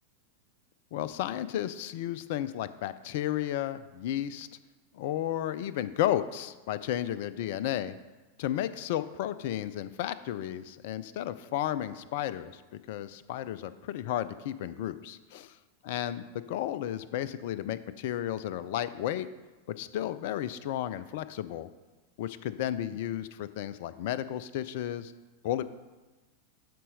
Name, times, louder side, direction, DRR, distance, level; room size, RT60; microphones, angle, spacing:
voice 1, 0.9-4.5 4.9-8.0 8.4-15.5 15.8-19.3 19.7-21.7 22.2-25.1 25.4-25.6, left 12 dB, 50° left, 15 dB, 0.4 m, -33 dB
12.0 x 4.2 x 5.4 m, 1.2 s
figure-of-eight pair, 90°, 0 cm